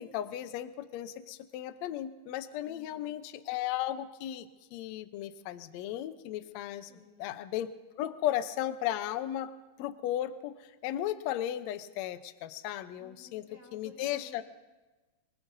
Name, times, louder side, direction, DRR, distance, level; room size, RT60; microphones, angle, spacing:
voice 1, 0.0-6.9 7.2-7.7 7.9-9.5 9.8-13.4 13.7-14.4, left 12 dB, 80° left, 11 dB, 1.5 m, -35 dB
voice 2, 2.6-3.2 6.9-7.4 13.0-14.4, left 1 dB, 30° left, -2 dB, 3.7 m, -55 dB
26.0 x 19.5 x 2.6 m, 1.2 s
omnidirectional pair, 4.1 m